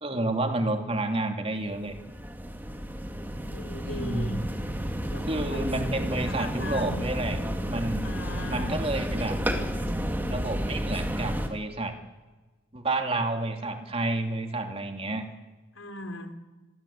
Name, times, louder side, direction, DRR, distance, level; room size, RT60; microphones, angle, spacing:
voice 1, 0.0-2.0 3.8-4.4 5.3-7.4 7.7-8.2 8.5-9.4 10.3-12.0 12.7-15.2, right 2 dB, 30° right, 5 dB, 2.6 m, -30 dB
sound 1, 1.7-11.5, equal, 10° right, 2.2 m, -31 dB
voice 2, 3.5-4.4 5.1-5.9 6.3-7.1 8.0-8.8 15.7-16.3, left 2 dB, 80° left, 7 dB, 3.3 m, -39 dB
27.0 x 22.5 x 8.7 m, 1.2 s
head